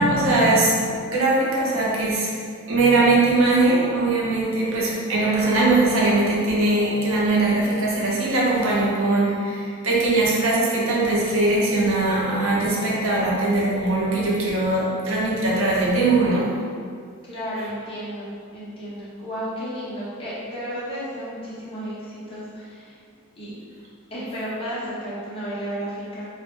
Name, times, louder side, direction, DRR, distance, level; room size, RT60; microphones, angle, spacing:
voice 1, 0.0-2.3 2.7-16.6, right 2 dB, 70° right, -5 dB, 0.5 m, -21 dB
voice 2, 17.2-23.0 23.4-23.6 24.1-26.3, equal, 25° left, -9 dB, 0.6 m, -33 dB
2.1 x 2.0 x 2.9 m, 2.1 s
head